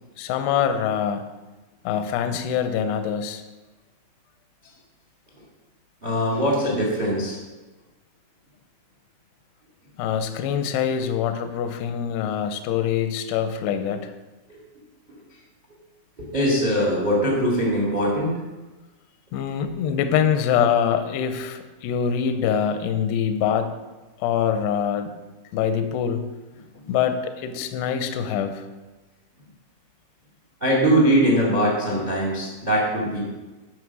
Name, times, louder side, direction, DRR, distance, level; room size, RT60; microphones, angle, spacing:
voice 1, 0.2-1.3 1.8-3.4 10.0-14.1 19.3-23.7 24.2-25.1 25.5-26.2 26.9-28.7, left 8 dB, 80° left, 8 dB, 2.5 m, -24 dB
voice 2, 6.0-7.3 14.5-14.6 16.2-18.4 30.6-33.2, equal, 60° right, -2 dB, 0.4 m, -21 dB
9.6 x 5.1 x 6.1 m, 1.2 s
omnidirectional pair, 5.3 m